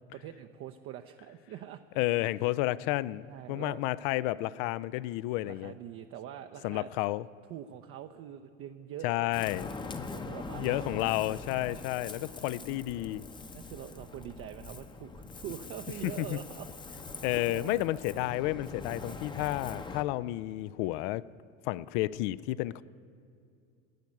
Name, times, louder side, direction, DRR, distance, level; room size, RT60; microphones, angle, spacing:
voice 1, 0.1-1.8 3.3-3.8 5.4-6.9 7.5-9.3 9.9-11.3 11.6-11.9 12.2-12.3 13.5-16.7 16.9-17.0 17.4-18.0 19.0-19.2, right 11 dB, 35° right, 6 dB, 0.6 m, -44 dB
voice 2, 2.0-3.2 3.5-5.7 6.6-7.3 9.0-9.7 10.5-13.2 16.0-16.4 17.2-21.2 21.6-22.8, left 17 dB, 40° left, 19 dB, 0.4 m, -31 dB
Ocean, 9.3-20.0, left 3 dB, 10° left, 0.8 m, -43 dB
15.5 x 9.4 x 9.2 m, 2.5 s
figure-of-eight pair, 75°, 39 cm